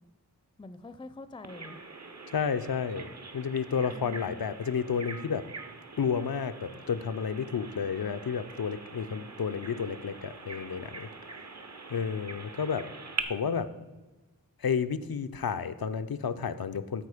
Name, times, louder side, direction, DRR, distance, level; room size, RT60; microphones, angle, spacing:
voice 1, 0.6-1.8 3.9-4.4 11.3-11.8, left 2 dB, 15° left, 11 dB, 0.5 m, -46 dB
Bird vocalization bird call bird song, 1.4-13.2, right 4 dB, 50° right, 0.8 m, -44 dB
voice 2, 2.3-3.1 3.3-5.5 6.0-11.1 11.9-12.9 13.3-13.7 14.6-17.1, left 6 dB, 80° left, 10 dB, 0.5 m, -31 dB
12.5 x 4.4 x 4.9 m, 1.2 s
wide cardioid pair, 45°, 36 cm